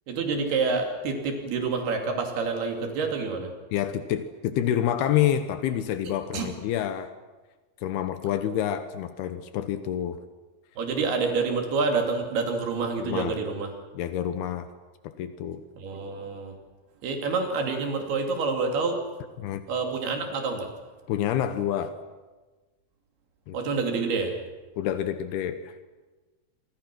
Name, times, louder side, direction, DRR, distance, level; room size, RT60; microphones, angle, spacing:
voice 1, 0.1-3.5 6.0-6.5 10.8-13.8 15.8-16.5 17.0-19.1 19.7-20.7 23.5-24.4, right 4 dB, 75° right, 3 dB, 4.7 m, -28 dB
voice 2, 3.7-7.1 7.8-10.2 13.0-13.4 13.9-14.7 15.0-15.6 19.4-19.6 21.1-22.0 23.5-23.6 24.8-25.7, left 10 dB, 80° left, 10 dB, 2.9 m, -28 dB
26.5 x 24.0 x 6.2 m, 1.3 s
omnidirectional pair, 4.6 m